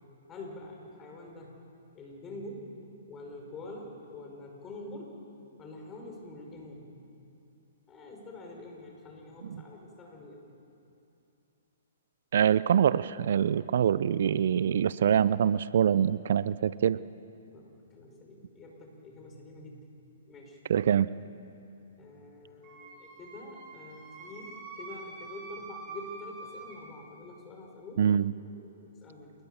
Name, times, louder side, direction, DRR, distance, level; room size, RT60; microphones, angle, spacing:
voice 1, 0.3-1.5 1.9-2.7 3.1-5.2 5.6-6.9 7.9-10.5 17.5-19.8 20.3-20.6 22.0-28.1 28.3-29.3, left 2 dB, 20° left, 1 dB, 5.7 m, -46 dB
voice 2, 12.3-17.0 20.7-21.1 28.0-28.3, right 9 dB, 65° right, 18 dB, 0.5 m, -24 dB
Wind instrument woodwind instrument, 22.6-26.8, right 4 dB, 30° right, 5.0 m, -45 dB
27.5 x 20.5 x 7.1 m, 2.8 s
hypercardioid pair, 135°, 0 cm